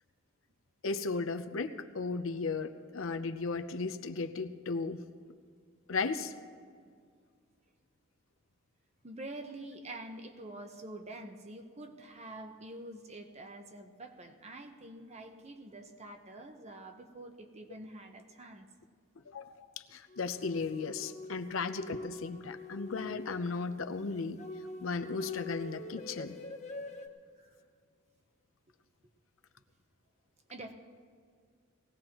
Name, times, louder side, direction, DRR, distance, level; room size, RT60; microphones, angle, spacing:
voice 1, 0.8-5.0 5.9-6.3 19.3-24.4 24.8-26.4, left 4 dB, 85° left, 8 dB, 0.7 m, -36 dB
voice 2, 9.0-18.7 27.4-27.5 30.5-30.7, right 2 dB, 35° right, 5 dB, 0.9 m, -46 dB
sound 1, 20.1-27.1, left 3 dB, 35° left, 0.9 m, -44 dB
19.5 x 16.5 x 3.0 m, 2.1 s
head